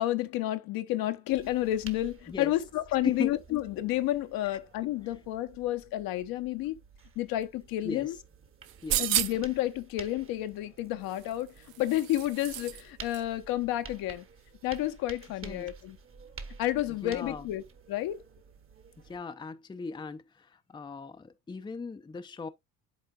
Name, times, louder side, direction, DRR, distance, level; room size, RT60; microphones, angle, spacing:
voice 1, 0.0-6.8 7.2-8.1 9.0-11.5 11.8-14.2 14.6-16.0 16.6-18.2, left 14 dB, 50° left, 0.9 m, -30 dB
sound 1, 1.3-19.2, right 5 dB, 30° right, 1.3 m, -51 dB
voice 2, 3.0-3.6 7.8-8.2 8.8-9.2 15.4-15.7 16.9-17.5 19.0-22.5, left 4 dB, 10° left, 0.6 m, -38 dB
sound 2, 8.6-9.6 11.1-12.8 13.1-13.2, right 14 dB, 50° right, 0.7 m, -32 dB
11.0 x 4.3 x 2.3 m
figure-of-eight pair, 60°, 44 cm